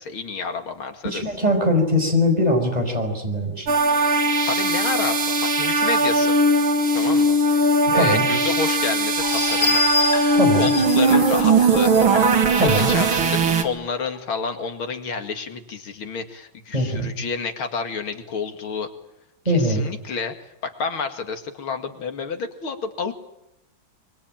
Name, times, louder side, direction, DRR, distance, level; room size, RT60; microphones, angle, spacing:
voice 1, 0.0-1.2 4.5-6.3 6.9-11.9 12.6-18.9 19.5-20.3 20.6-23.1, left 5 dB, 90° left, 6 dB, 3.0 m, -30 dB
voice 2, 1.0-3.7 7.9-8.2 10.3-10.7 12.6-12.9 16.7-17.1 19.4-19.9, left 1 dB, 20° right, 4 dB, 5.0 m, -21 dB
sound 1, 3.7-13.6, right 2 dB, 90° right, 2.9 m, -19 dB
sound 2, 9.2-13.7 14.2-14.3 14.6-14.7, left 4 dB, 60° left, 3.1 m, -27 dB
24.5 x 23.5 x 8.9 m, 0.84 s
omnidirectional pair, 2.2 m